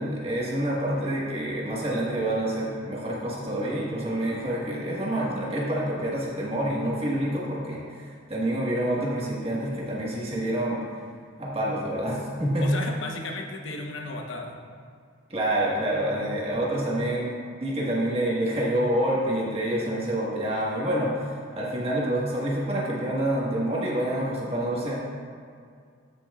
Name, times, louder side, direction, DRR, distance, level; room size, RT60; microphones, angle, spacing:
voice 1, 0.0-10.8 11.4-12.7 15.3-24.9, right 1 dB, 30° right, -5 dB, 1.5 m, -27 dB
voice 2, 12.6-14.6 16.2-16.3, left 2 dB, 90° left, 2 dB, 1.0 m, -34 dB
13.5 x 5.8 x 2.4 m, 2.2 s
head